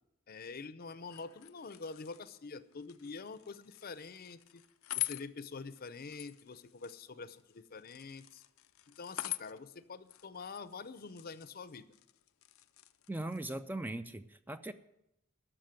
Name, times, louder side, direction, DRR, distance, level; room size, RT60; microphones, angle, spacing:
voice 1, 0.3-4.6 4.9-8.4 8.9-11.9, left 4 dB, 45° left, 14 dB, 0.6 m, -46 dB
sound 1, 1.0-13.4, left 16 dB, 85° left, 0.6 m, -46 dB
voice 2, 13.1-14.7, right 1 dB, 10° right, 10 dB, 0.4 m, -39 dB
12.5 x 6.4 x 9.1 m, 0.83 s
head